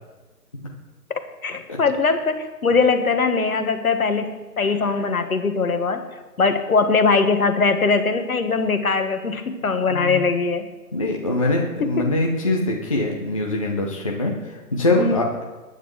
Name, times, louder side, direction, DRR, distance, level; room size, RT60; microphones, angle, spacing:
voice 1, 1.1-6.1 6.4-10.7 15.0-15.3, left 4 dB, 60° left, 8 dB, 1.5 m, -21 dB
voice 2, 9.9-10.2 10.9-15.4, left 2 dB, 20° left, 0 dB, 0.8 m, -23 dB
20.0 x 9.6 x 3.2 m, 1.2 s
figure-of-eight pair, 155°, 48 cm